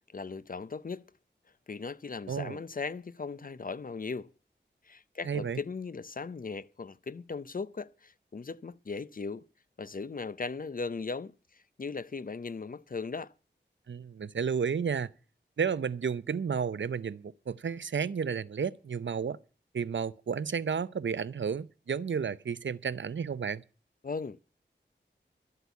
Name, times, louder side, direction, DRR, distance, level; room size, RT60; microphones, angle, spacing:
voice 1, 0.1-1.0 1.7-4.3 4.9-9.4 9.8-11.3 11.8-13.3 24.0-24.4, left 4 dB, 45° left, 0.6 m, -38 dB
voice 2, 2.3-2.6 5.2-5.6 13.9-15.1 15.6-19.4 19.7-23.6, right 6 dB, 75° right, 0.6 m, -32 dB
12.5 x 8.1 x 8.2 m
wide cardioid pair, 60°, 19 cm